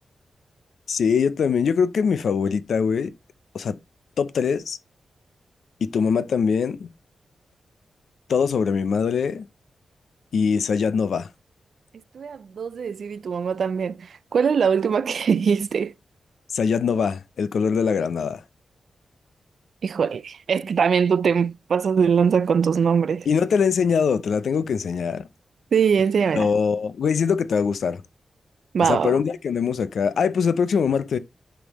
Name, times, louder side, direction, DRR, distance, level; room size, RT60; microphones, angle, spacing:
voice 1, 0.9-3.1 3.5-3.8 4.2-4.8 5.8-6.9 8.3-9.5 10.3-11.3 16.5-18.4 23.3-25.3 26.4-28.0 28.8-31.2, left 6 dB, 80° left, 0.5 m, -22 dB
voice 2, 12.1-15.9 19.8-23.3 25.7-26.5 28.7-29.2, right 6 dB, 70° right, 0.3 m, -22 dB
9.9 x 3.5 x 3.0 m
cardioid pair, 85°, 0 cm